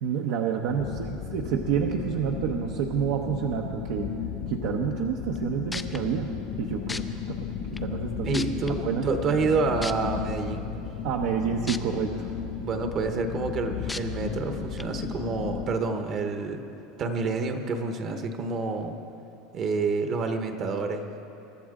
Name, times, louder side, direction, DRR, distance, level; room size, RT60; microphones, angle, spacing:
voice 1, 0.0-4.1 4.5-6.3 6.6-7.5 7.8-8.4 8.8-9.1 11.0-12.3, right 8 dB, 65° right, 1 dB, 0.9 m, -29 dB
sound 1, 0.7-15.7, left 7 dB, 65° left, 1.8 m, -34 dB
sound 2, 5.4-5.5 5.7-6.0 6.9-7.0 7.8-7.9 8.3-8.7 9.8-9.9 11.7-11.8 12.3-12.4 13.9-14.0 14.8-14.9, left 3 dB, 10° left, 0.4 m, -33 dB
voice 2, 8.2-10.7 12.6-16.6 17.0-19.0 19.5-21.3, right 4 dB, 30° right, 6 dB, 1.0 m, -28 dB
23.5 x 13.0 x 3.8 m, 2.9 s
supercardioid pair, 160°, 0 cm